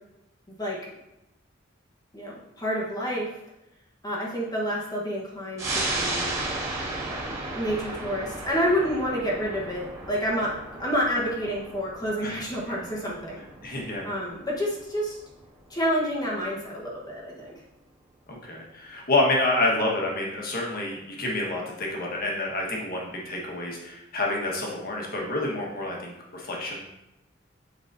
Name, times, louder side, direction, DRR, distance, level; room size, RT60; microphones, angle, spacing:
voice 1, 2.1-3.3 4.0-6.3 7.1-13.4 14.0-15.2 15.7-17.5, equal, 20° left, -4 dB, 1.1 m, -29 dB
sound 1, 5.6-16.6 16.9-17.0, right 2 dB, 15° right, 2.1 m, -35 dB
voice 2, 13.6-14.1 18.3-26.8, left 2 dB, 50° left, -2 dB, 1.4 m, -28 dB
7.8 x 4.8 x 2.6 m, 0.92 s
head